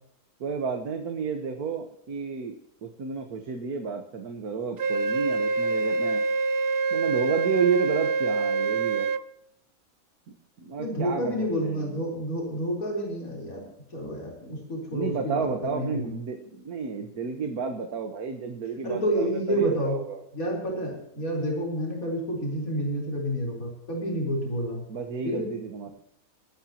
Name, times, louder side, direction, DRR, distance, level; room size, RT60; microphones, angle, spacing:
voice 1, 0.4-2.5 2.8-6.2 6.9-9.1 10.3-12.1 14.9-20.2 24.9-25.9, right 5 dB, 85° right, 4 dB, 1.8 m, -31 dB
Wind instrument woodwind instrument, 4.8-9.2, right 4 dB, 55° right, 0.7 m, -25 dB
voice 2, 10.8-13.6 13.9-16.1 18.8-20.0 20.3-24.8 25.2-25.4, equal, 70° left, -1 dB, 4.5 m, -29 dB
23.0 x 10.0 x 2.9 m, 0.76 s
omnidirectional pair, 1.5 m